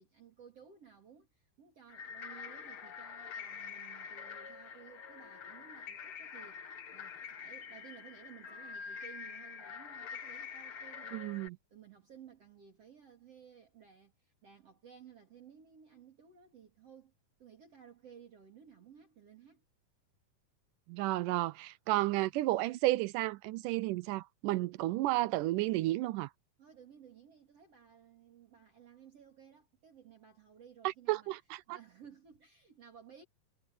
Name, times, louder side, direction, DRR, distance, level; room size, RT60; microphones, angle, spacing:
voice 1, 0.0-11.5 11.7-17.1 17.4-19.6 26.6-31.3 31.7-33.2, right 8 dB, 45° right, 3.6 m, -57 dB
sound 1, 1.9-11.5, left 6 dB, 50° left, 1.7 m, -46 dB
voice 2, 11.1-11.6 20.9-26.3 30.8-31.8, right 17 dB, 80° right, 1.9 m, -32 dB
omnidirectional pair, 4.2 m